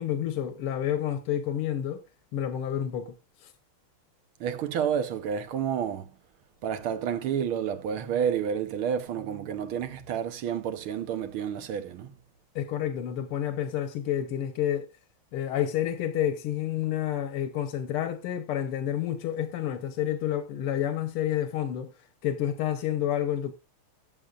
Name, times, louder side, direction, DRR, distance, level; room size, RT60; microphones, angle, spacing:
voice 1, 0.0-2.0 2.3-3.2 3.4-3.5 12.6-14.9 15.3-21.9 22.2-23.5, left 10 dB, 90° left, 1.9 m, -29 dB
voice 2, 4.4-6.1 6.6-12.1, right 8 dB, 75° right, 1.9 m, -30 dB
16.5 x 7.2 x 2.5 m
omnidirectional pair, 2.4 m